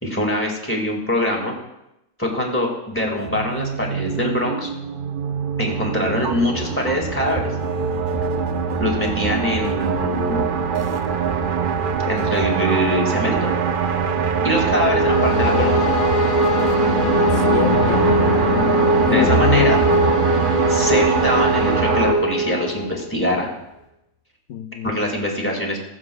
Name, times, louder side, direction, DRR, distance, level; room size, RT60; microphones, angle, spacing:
voice 1, 0.0-1.6 2.2-4.7 5.6-7.5 8.8-10.4 12.1-13.5 14.4-15.9 19.1-19.8 20.7-23.5 24.8-25.8, left 1 dB, 10° left, 2.2 m, -23 dB
sound 1, 3.2-22.1, right 6 dB, 55° right, 0.5 m, -23 dB
Final Chord, 14.6-23.0, equal, 35° left, 1.7 m, -20 dB
voice 2, 17.2-18.3 19.0-19.8 24.5-24.9, left 8 dB, 85° left, 1.1 m, -24 dB
20.5 x 7.4 x 2.4 m
omnidirectional pair, 1.5 m